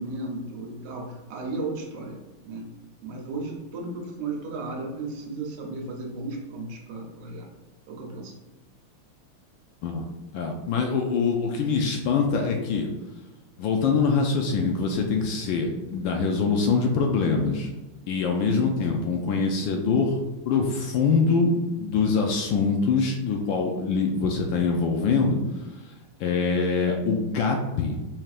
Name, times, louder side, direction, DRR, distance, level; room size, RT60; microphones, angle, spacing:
voice 1, 0.0-2.2 2.4-2.7 3.0-7.5 7.9-8.3, right 2 dB, 85° right, 0 dB, 1.8 m, -34 dB
voice 2, 10.3-12.9 13.6-17.7 18.1-25.4 26.2-28.0, left 4 dB, 75° left, 2 dB, 1.1 m, -24 dB
5.6 x 3.4 x 2.4 m, 1.1 s
omnidirectional pair, 2.4 m